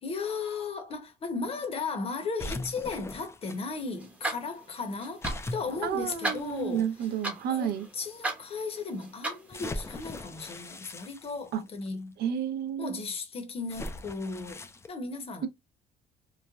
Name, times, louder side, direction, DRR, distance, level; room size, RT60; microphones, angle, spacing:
voice 1, 0.0-5.3 5.5-6.9 7.5-12.2 12.8-15.5, left 4 dB, 35° left, 0.8 m, -36 dB
sound 1, 2.4-3.6 5.2-6.8 7.6-7.7 9.5-11.9 13.7-14.9, left 2 dB, 15° left, 0.3 m, -40 dB
sound 2, 3.4-10.1, right 2 dB, 10° right, 0.7 m, -39 dB
voice 2, 5.8-7.8 11.5-11.6 12.2-13.0, right 9 dB, 70° right, 0.5 m, -31 dB
3.1 x 2.1 x 2.3 m
cardioid pair, 110°, 17 cm